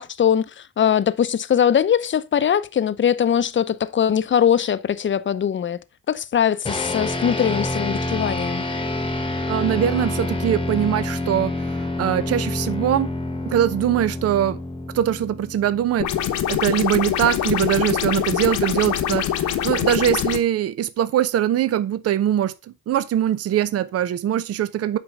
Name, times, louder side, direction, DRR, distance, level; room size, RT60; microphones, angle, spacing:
voice 1, 0.0-5.8 6.1-8.6, left 8 dB, 40° left, 0.7 m, -21 dB
sound 1, 6.6-16.3, left 2 dB, 15° left, 1.1 m, -27 dB
voice 2, 9.5-13.1 13.5-14.6 14.9-16.1 16.5-22.5 22.9-25.0, right 11 dB, 55° right, 0.6 m, -22 dB
sound 2, 16.0-20.4, left 10 dB, 75° left, 1.2 m, -24 dB
8.2 x 5.1 x 4.8 m
cardioid pair, 90°, 30 cm